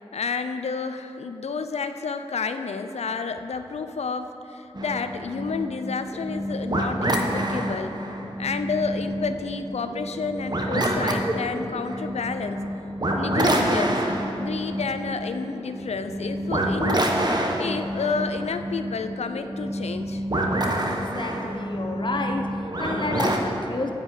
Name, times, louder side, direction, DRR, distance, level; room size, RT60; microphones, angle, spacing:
voice 1, 0.1-8.0 8.4-12.6 13.2-14.0 14.4-17.1 17.6-20.2, left 5 dB, 90° left, 9 dB, 0.5 m, -30 dB
sound 1, 4.7-23.4, right 1 dB, 40° right, 1.1 m, -27 dB
voice 2, 20.9-23.9, left 2 dB, 45° left, 4 dB, 1.0 m, -30 dB
9.6 x 5.2 x 8.1 m, 2.8 s
wide cardioid pair, 55°, 11 cm